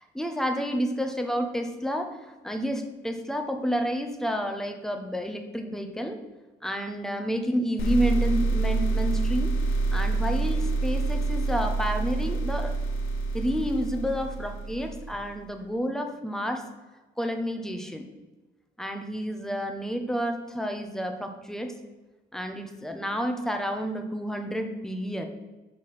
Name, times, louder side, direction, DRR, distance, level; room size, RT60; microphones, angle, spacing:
voice 1, 0.0-6.2 6.6-9.6 9.9-12.7 13.3-16.6 17.2-18.1 18.8-21.7 22.3-25.3, equal, ahead, 5 dB, 1.0 m, -30 dB
sound 1, 7.8-15.3, right 3 dB, 85° left, 1.0 m, -27 dB
6.3 x 4.8 x 5.6 m, 1.2 s
cardioid pair, 90°, 20 cm